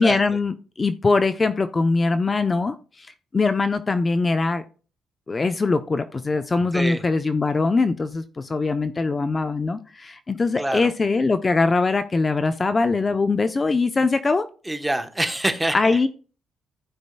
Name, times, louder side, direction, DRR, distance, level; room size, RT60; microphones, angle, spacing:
voice 1, 0.0-3.1 3.3-4.6 5.3-14.5 15.7-16.1, left 3 dB, 30° left, 10 dB, 0.6 m, -22 dB
voice 2, 10.6-10.9 14.7-16.0, right 1 dB, 10° right, 8 dB, 1.0 m, -25 dB
15.0 x 5.2 x 2.2 m, 0.38 s
cardioid pair, 90°, 0 cm